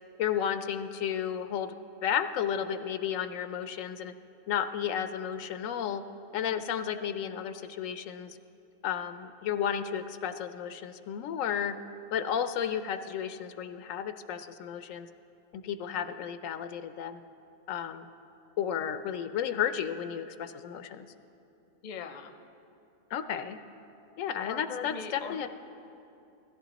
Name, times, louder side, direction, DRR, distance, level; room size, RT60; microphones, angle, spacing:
voice 1, 0.2-1.8 2.0-4.1 4.5-6.0 6.3-8.4 8.8-11.8 12.1-15.1 15.5-17.2 17.7-18.1 18.6-21.1 23.1-23.6 24.2-25.5, left 9 dB, 85° left, 10 dB, 1.0 m, -33 dB
voice 2, 21.8-22.3 24.4-25.5, left 6 dB, 45° left, 7 dB, 0.6 m, -40 dB
16.5 x 14.0 x 4.0 m, 2.7 s
omnidirectional pair, 1.3 m